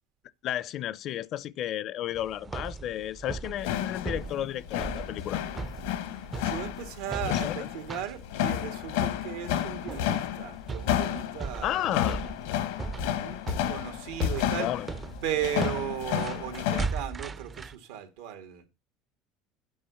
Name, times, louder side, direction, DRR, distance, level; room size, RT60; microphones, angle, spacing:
voice 1, 0.4-5.4 7.3-7.6 11.6-12.3 14.6-14.9, left 12 dB, 55° left, 0.5 m, -32 dB
sound 1, 2.1-17.8, right 4 dB, 25° right, 0.5 m, -39 dB
sound 2, 3.6-16.9, left 11 dB, 90° left, 1.1 m, -31 dB
voice 2, 6.4-12.2 13.0-13.4 13.7-14.7 15.2-18.6, right 10 dB, 85° right, 2.1 m, -36 dB
8.7 x 5.2 x 7.0 m
supercardioid pair, 115°, 0 cm